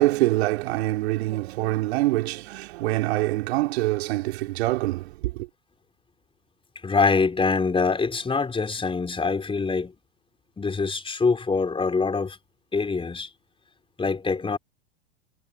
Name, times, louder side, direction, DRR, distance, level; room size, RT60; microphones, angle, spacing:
voice 1, 0.0-5.5, right 18 dB, 65° right, 3.6 m, -25 dB
voice 2, 6.8-9.9 10.6-12.4 12.7-13.3 14.0-14.6, left 4 dB, 15° left, 4.3 m, -24 dB
hypercardioid pair, 95°, 34 cm